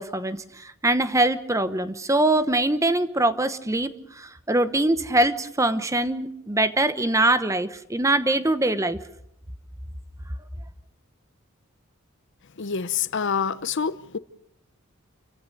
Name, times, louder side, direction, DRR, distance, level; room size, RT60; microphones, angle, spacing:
voice 1, 0.0-3.9 4.2-9.0, right 2 dB, 15° right, 0.9 m, -23 dB
voice 2, 12.6-14.2, left 6 dB, 60° left, 0.7 m, -27 dB
28.5 x 15.0 x 6.7 m
head